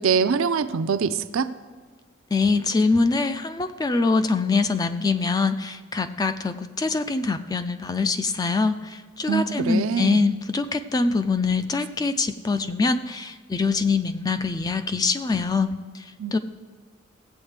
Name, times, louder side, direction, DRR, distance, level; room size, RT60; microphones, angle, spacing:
voice 1, 0.0-1.5 9.3-10.3 16.2-16.4, right 6 dB, 85° right, 11 dB, 0.5 m, -24 dB
voice 2, 2.3-16.4, left 4 dB, 20° left, 10 dB, 0.3 m, -24 dB
16.5 x 7.9 x 3.3 m, 1.5 s
head